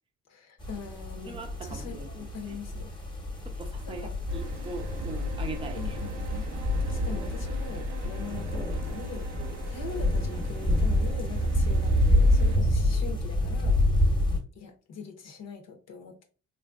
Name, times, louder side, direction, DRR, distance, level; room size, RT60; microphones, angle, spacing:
voice 1, 0.3-2.9 3.9-4.2 5.8-6.5 6.8-9.3 9.7-14.1 14.5-16.2, left 5 dB, 60° left, 0.7 m, -42 dB
sound 1, 0.6-14.4, left 1 dB, 15° left, 0.9 m, -27 dB
voice 2, 1.2-2.6 3.4-6.0, right 3 dB, 20° right, 0.6 m, -41 dB
sound 2, 4.3-12.6, right 5 dB, 85° right, 0.7 m, -45 dB
3.6 x 2.5 x 2.3 m
cardioid pair, 90°, 30 cm